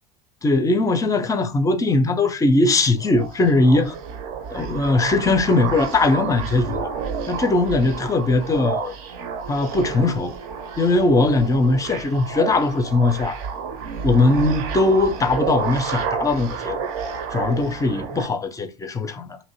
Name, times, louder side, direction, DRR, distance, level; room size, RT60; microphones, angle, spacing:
voice 1, 0.4-4.0 4.5-6.9 7.3-8.9 9.5-10.3 10.8-13.4 14.0-16.9 17.3-19.4, left 2 dB, 15° left, 0.4 m, -20 dB
sound 1, 3.0-18.3, right 6 dB, 60° right, 0.6 m, -30 dB
2.9 x 2.5 x 2.9 m
figure-of-eight pair, 70°, 21 cm